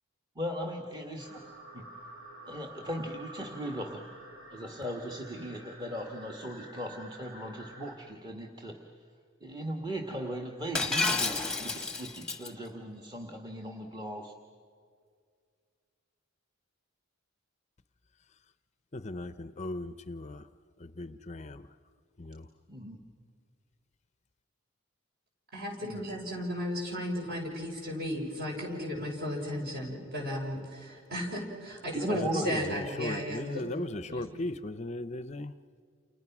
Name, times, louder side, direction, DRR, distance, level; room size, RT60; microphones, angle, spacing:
voice 1, 0.3-1.3 1.7-1.8 2.5-4.0 4.5-8.7 9.4-14.3 22.7-23.0 25.8-25.9 31.9-32.5, equal, 20° right, 1.6 m, -37 dB
sound 1, 1.2-8.0, right 2 dB, 75° right, 5.9 m, -49 dB
Shatter, 10.8-12.5, left 3 dB, 5° left, 1.2 m, -30 dB
voice 2, 19.0-20.3 21.0-21.5 33.0-33.9 34.1-35.5, left 1 dB, 30° left, 0.6 m, -37 dB
voice 3, 25.5-34.4, equal, 45° right, 6.3 m, -35 dB
29.5 x 29.0 x 6.0 m
head